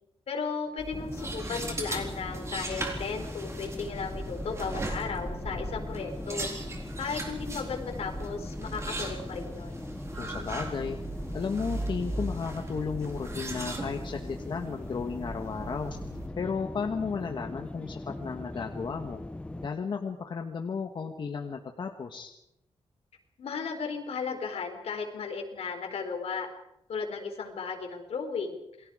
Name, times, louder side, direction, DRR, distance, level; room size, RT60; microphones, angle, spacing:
voice 1, 0.3-6.5 7.0-9.8 23.4-26.5 26.9-28.9, left 5 dB, 70° left, 4 dB, 4.5 m, -35 dB
sound 1, 0.8-16.3, right 2 dB, 25° right, 3.9 m, -38 dB
sound 2, 0.9-19.7, left 2 dB, 10° left, 0.7 m, -41 dB
sound 3, 5.1-9.3, left 4 dB, 25° left, 3.9 m, -53 dB
voice 2, 10.2-11.0 11.3-16.0 16.4-19.2 19.6-22.3, left 5 dB, 45° left, 4 dB, 1.4 m, -34 dB
29.0 x 22.5 x 5.0 m, 0.81 s
wide cardioid pair, 170°, 11 cm